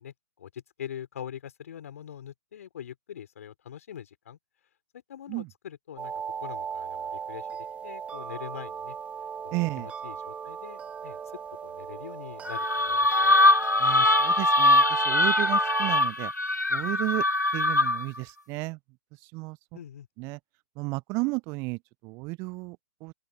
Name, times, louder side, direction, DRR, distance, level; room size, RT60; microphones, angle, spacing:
voice 1, 0.0-4.4 4.9-9.0 9.4-11.2 11.6-13.4 19.7-20.1, left 9 dB, 55° left, 5.0 m, -43 dB
sound 1, 6.0-16.0, right 7 dB, 15° right, 1.8 m, -35 dB
voice 2, 9.5-9.9 13.8-16.3 16.7-17.2 17.5-18.8 19.3-19.6 20.2-20.4 20.8-23.1, right 27 dB, 30° right, 0.8 m, -33 dB
sound 2, 12.5-18.2, left 2 dB, 85° left, 1.1 m, -22 dB
open air
figure-of-eight pair, 115°, 9 cm